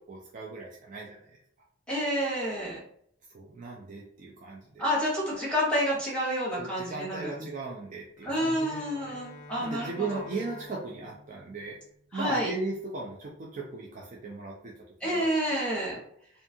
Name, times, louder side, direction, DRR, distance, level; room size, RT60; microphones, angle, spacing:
voice 1, 0.1-1.2 3.3-4.8 6.6-9.2 9.6-11.8 12.1-14.7 15.0-15.3 15.7-16.0, right 3 dB, 40° right, -3 dB, 0.4 m, -37 dB
voice 2, 1.9-2.8 4.8-7.5 8.2-10.2 12.1-12.5 15.0-16.0, equal, 5° left, -6 dB, 0.9 m, -29 dB
Bowed string instrument, 8.2-12.3, left 1 dB, 45° left, 0.5 m, -49 dB
2.6 x 2.3 x 2.6 m, 0.67 s
head